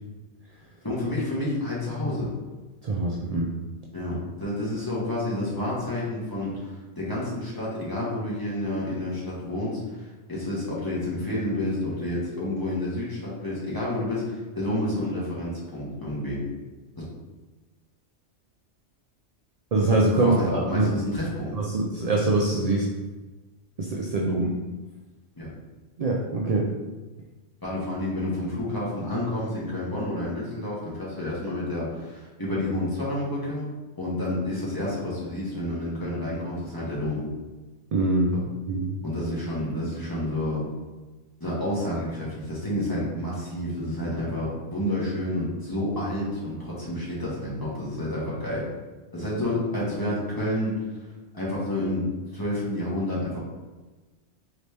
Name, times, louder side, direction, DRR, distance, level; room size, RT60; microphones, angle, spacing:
voice 1, 0.8-2.3 3.9-10.0 10.3-16.4 20.2-21.5 25.4-25.5 27.6-33.7 34.0-37.2 38.3-38.4 39.0-40.6 41.4-48.7 49.1-51.0 51.3-53.4, left 1 dB, 20° left, -8 dB, 1.1 m, -29 dB
voice 2, 2.8-3.5 19.7-20.9 21.5-22.9 23.8-24.5 26.0-26.7 37.9-38.4 38.7-39.0, right 2 dB, 65° right, -2 dB, 0.4 m, -24 dB
4.1 x 2.9 x 3.3 m, 1.2 s
omnidirectional pair, 1.2 m